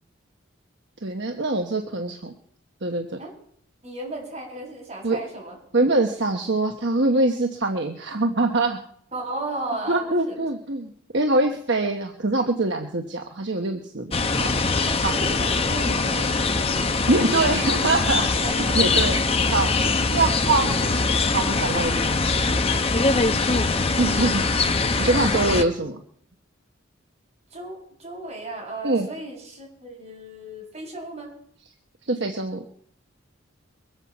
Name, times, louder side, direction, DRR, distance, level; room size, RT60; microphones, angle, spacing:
voice 1, 1.0-2.3 2.8-3.2 5.0-5.2 5.7-8.8 9.9-14.5 15.0-15.2 17.1-18.4 18.7-19.1 19.5-19.7 20.1-21.0 21.3-22.0 24.0-24.4 25.0-26.0 28.8-29.1 32.1-32.6, right 2 dB, 60° right, 3 dB, 1.2 m, -23 dB
voice 2, 3.8-5.6 9.1-10.5 14.8-17.0 17.2-17.6 18.4-18.8 21.9-22.1 23.1-23.6 25.1-25.5 27.5-31.3, right 2 dB, 30° right, -2 dB, 7.2 m, -35 dB
sound 1, 14.1-25.6, left 3 dB, 30° left, 0.9 m, -22 dB
23.0 x 7.9 x 7.2 m, 0.65 s
head